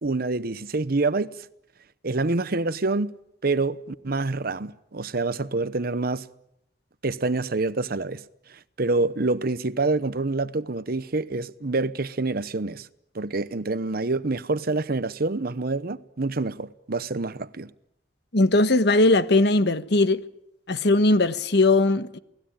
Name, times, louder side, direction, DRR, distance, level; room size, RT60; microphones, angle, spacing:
voice 1, 0.0-1.5 2.0-3.1 3.4-6.3 7.0-8.2 8.5-12.9 13.1-17.7, right 3 dB, 55° right, 1.0 m, -27 dB
voice 2, 18.3-20.2 20.7-22.2, left 2 dB, 65° left, 1.3 m, -19 dB
29.0 x 19.5 x 8.9 m
head